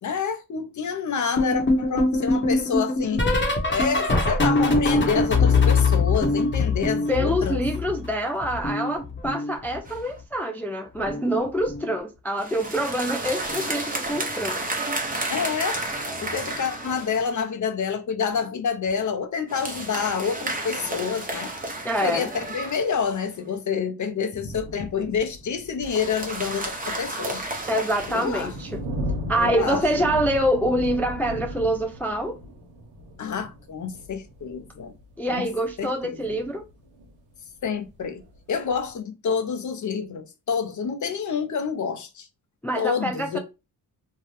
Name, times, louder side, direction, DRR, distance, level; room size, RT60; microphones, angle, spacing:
voice 1, 0.0-3.2 3.7-7.6 15.3-15.8 16.2-21.5 22.0-27.4 28.1-28.5 29.3-30.1 33.2-34.9 35.3-35.5 35.8-36.4 37.6-38.2 38.5-42.3 42.8-43.4, left 6 dB, 50° left, 0.7 m, -28 dB
sound 1, 1.4-8.1 8.4-10.0 11.0-11.3 11.6-11.9 13.5-13.8 14.1-14.3 15.9-16.0, left 3 dB, 30° left, 1.0 m, -23 dB
voice 2, 7.1-14.7 21.8-22.3 27.7-28.8 29.3-32.4 35.2-36.6 42.6-43.4, equal, 5° left, 0.3 m, -26 dB
sound 2, 9.9-10.1 12.4-17.4 19.5-23.3 25.8-28.6, right 2 dB, 20° right, 0.9 m, -32 dB
sound 3, 24.5-37.2 37.8-38.9, equal, 80° right, 1.0 m, -37 dB
2.7 x 2.3 x 3.2 m
cardioid pair, 85°, 38 cm